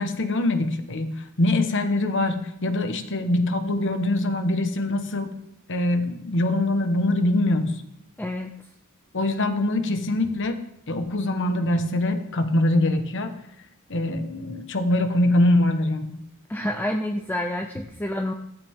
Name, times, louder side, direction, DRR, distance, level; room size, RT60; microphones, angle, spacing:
voice 1, 0.0-5.3 5.7-7.7 9.1-10.6 10.9-13.3 13.9-16.2, left 1 dB, 60° left, 8 dB, 1.3 m, -23 dB
voice 2, 8.2-8.5 16.5-18.3, left 1 dB, 10° left, 3 dB, 0.6 m, -28 dB
14.5 x 14.5 x 3.6 m, 0.78 s
head